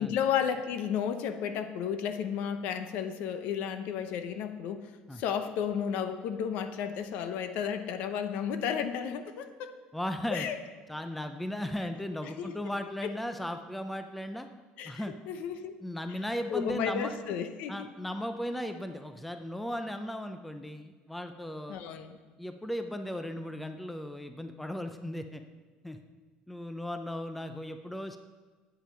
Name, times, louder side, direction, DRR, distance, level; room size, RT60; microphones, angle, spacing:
voice 1, 0.0-9.7 10.3-10.6 12.2-12.5 13.0-13.1 14.8-15.7 16.1-16.2 16.5-17.9 21.7-22.2, left 8 dB, 60° left, 10 dB, 0.8 m, -33 dB
voice 2, 9.9-10.5 10.9-14.5 14.8-15.2 15.8-17.1 17.7-21.8 22.4-25.4 25.8-26.0 26.5-28.2, left 1 dB, 5° left, 7 dB, 0.4 m, -36 dB
9.1 x 8.5 x 5.6 m, 1.4 s
cardioid pair, 170°, 3 cm